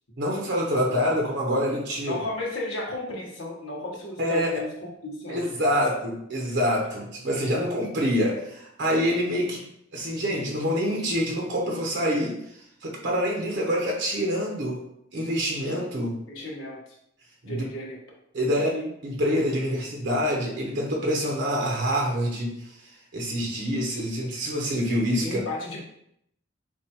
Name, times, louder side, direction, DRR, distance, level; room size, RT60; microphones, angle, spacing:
voice 1, 0.2-2.2 4.2-4.5 5.3-9.6 9.9-12.4 12.8-14.8 15.1-16.2 17.4-17.6 18.3-18.7 19.0-25.4, equal, 60° right, -1 dB, 0.9 m, -26 dB
voice 2, 2.1-5.4 5.7-5.9 16.3-16.8 17.5-18.0 18.5-18.9 25.2-25.8, left 1 dB, 85° left, -2 dB, 1.3 m, -34 dB
7.1 x 2.5 x 2.9 m, 0.74 s
head